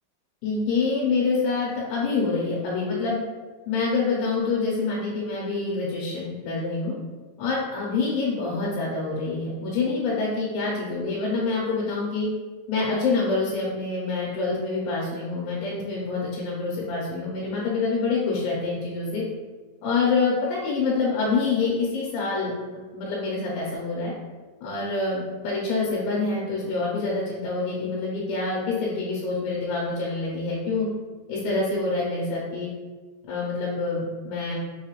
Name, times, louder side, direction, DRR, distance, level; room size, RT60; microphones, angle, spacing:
voice 1, 0.4-3.2 3.7-6.9 7.4-12.3 12.7-19.2 19.8-24.1 24.6-30.9 31.3-32.7 33.3-34.6, left 4 dB, 90° left, -4 dB, 2.8 m, -26 dB
6.1 x 2.4 x 3.0 m, 1.3 s
omnidirectional pair, 4.6 m